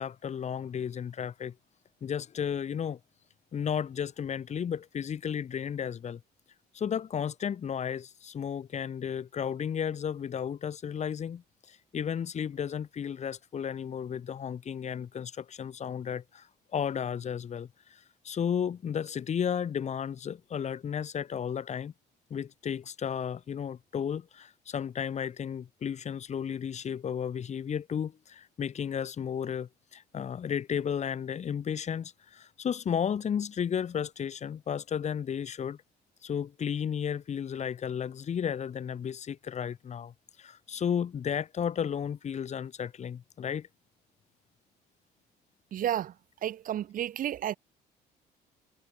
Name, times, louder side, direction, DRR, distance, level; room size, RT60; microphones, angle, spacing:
voice 1, 0.0-1.5 2.0-3.0 3.5-6.2 6.7-11.4 11.7-16.5 16.7-18.0 18.2-21.9 22.3-35.8 36.2-40.1 40.4-43.7, left 8 dB, 40° left, 2.4 m, -33 dB
voice 2, 45.7-46.1 46.4-47.6, right 11 dB, 55° right, 1.2 m, -31 dB
cardioid pair, 110°, 17 cm